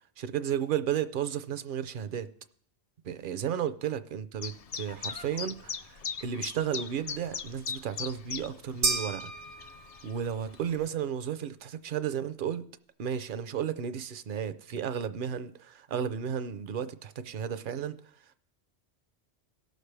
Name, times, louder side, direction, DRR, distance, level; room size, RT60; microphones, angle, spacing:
voice 1, 0.2-2.3 3.0-9.3 10.0-12.7 13.0-18.0, right 9 dB, 60° right, 0.7 m, -33 dB
Chirp tweet, 4.4-10.9, left 6 dB, 50° left, 0.4 m, -40 dB
sound 1, 8.8-10.3, right 3 dB, 80° right, 1.4 m, -32 dB
18.0 x 6.6 x 3.3 m
omnidirectional pair, 1.1 m